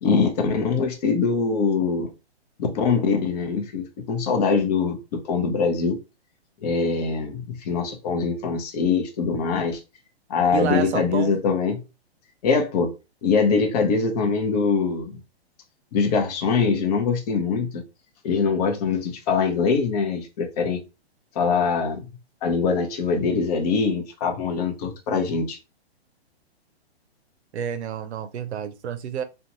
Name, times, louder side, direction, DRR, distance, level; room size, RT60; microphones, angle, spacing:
voice 1, 0.0-2.1 2.6-6.0 6.6-9.8 10.3-11.8 12.4-12.9 13.2-15.2 15.9-17.8 18.2-20.8 21.3-22.0 22.4-25.6, left 5 dB, 40° left, 0.7 m, -23 dB
voice 2, 10.5-11.3 27.5-29.2, right 8 dB, 90° right, 0.5 m, -29 dB
2.5 x 2.2 x 2.8 m
hypercardioid pair, 140°, 32 cm